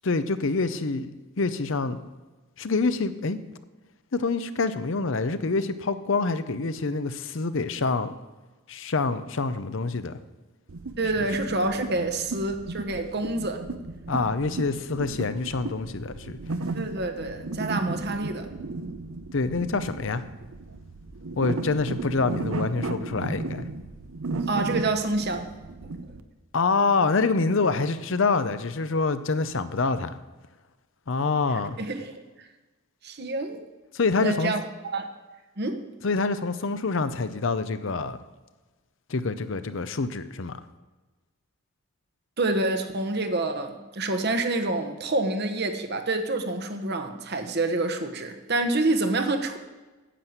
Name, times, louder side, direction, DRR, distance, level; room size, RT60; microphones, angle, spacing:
voice 1, 0.0-1.1 1.4-2.1 2.6-3.4 4.1-8.1 8.7-10.2 14.1-16.4 19.3-20.2 21.4-23.7 26.5-30.1 31.1-31.8 33.9-34.5 36.0-38.2 39.1-40.6, left 3 dB, 60° left, 0.7 m, -26 dB
sound 1, 10.7-26.2, right 3 dB, 75° right, 0.7 m, -35 dB
voice 2, 11.0-13.6 16.7-18.5 24.4-25.5 25.8-26.1 31.5-32.5 33.0-33.6 34.2-34.6 34.9-35.1 35.6-35.9 42.4-49.6, right 2 dB, 50° right, 1.1 m, -27 dB
10.0 x 7.4 x 8.0 m
head